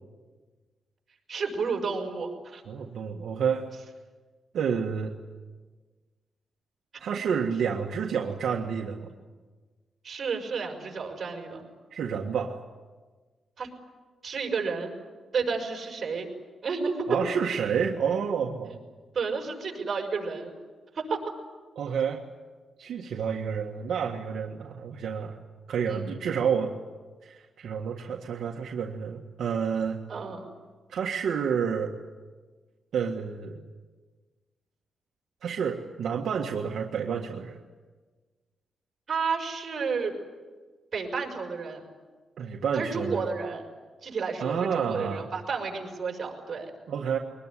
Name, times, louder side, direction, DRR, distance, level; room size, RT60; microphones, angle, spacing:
voice 1, 1.3-2.6 10.0-11.7 13.6-13.7 14.2-14.9 15.3-16.3 16.6-17.1 19.1-20.5 20.9-21.2 25.9-26.2 30.1-30.4 39.1-40.1 40.9-41.8 42.7-43.6 44.0-46.7, right 5 dB, 45° right, 3 dB, 6.2 m, -31 dB
voice 2, 2.7-3.7 4.5-5.1 7.0-9.1 11.9-12.6 17.1-18.8 21.8-22.2 22.8-25.4 25.7-26.7 27.2-30.0 30.9-31.9 32.9-33.6 35.4-37.6 42.4-43.2 44.4-45.3 46.9-47.2, right 7 dB, 75° right, 1 dB, 1.7 m, -29 dB
23.5 x 20.5 x 10.0 m, 1.4 s
cardioid pair, 115°, 0 cm